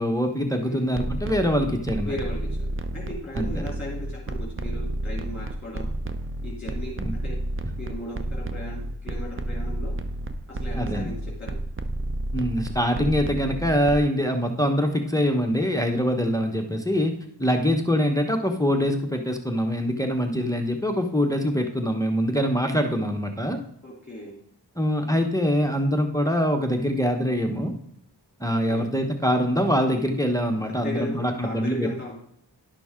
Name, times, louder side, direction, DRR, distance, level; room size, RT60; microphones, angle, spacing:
voice 1, 0.0-2.1 3.4-3.5 7.0-7.1 10.8-11.1 12.3-17.1 17.4-23.6 24.8-27.7 28.4-31.9, equal, 10° left, 4 dB, 1.0 m, -24 dB
sound 1, 0.8-14.0, right 1 dB, 30° right, 0.7 m, -31 dB
voice 2, 2.0-5.9 6.4-7.4 7.8-9.9 10.5-11.6 23.8-24.4 28.5-28.8 30.6-32.2, left 1 dB, 25° left, -4 dB, 2.9 m, -37 dB
11.5 x 5.9 x 3.7 m, 0.71 s
cardioid pair, 50°, 42 cm